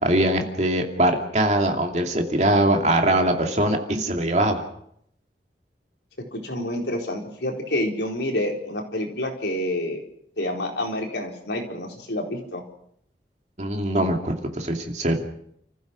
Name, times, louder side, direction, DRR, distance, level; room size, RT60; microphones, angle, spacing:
voice 1, 0.0-4.6 13.6-15.2, right 1 dB, 40° right, 3 dB, 2.7 m, -22 dB
voice 2, 6.3-10.0 10.4-12.6, left 1 dB, 80° left, 1 dB, 4.4 m, -28 dB
29.5 x 15.0 x 6.3 m, 0.72 s
head